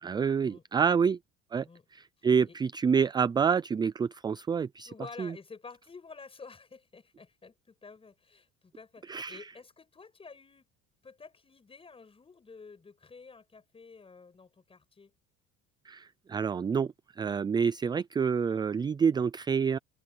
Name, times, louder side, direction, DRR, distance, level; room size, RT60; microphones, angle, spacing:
voice 1, 0.0-1.2 1.5-1.7 1.9-4.9 5.2-5.3 9.1-9.4 15.9-19.8, right 6 dB, 15° right, 0.4 m, -28 dB
voice 2, 2.2-2.6 4.8-10.7 11.0-15.1, left 4 dB, 20° left, 5.8 m, -50 dB
cardioid pair, 130°, 29 cm